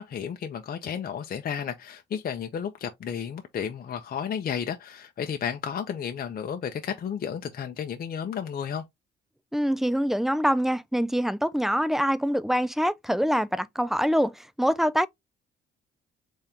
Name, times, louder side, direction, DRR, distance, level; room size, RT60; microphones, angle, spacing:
voice 1, 0.0-8.8, left 8 dB, 50° left, 0.6 m, -32 dB
voice 2, 9.5-15.1, equal, ahead, 0.3 m, -25 dB
3.6 x 3.4 x 2.8 m
cardioid pair, 90°, 20 cm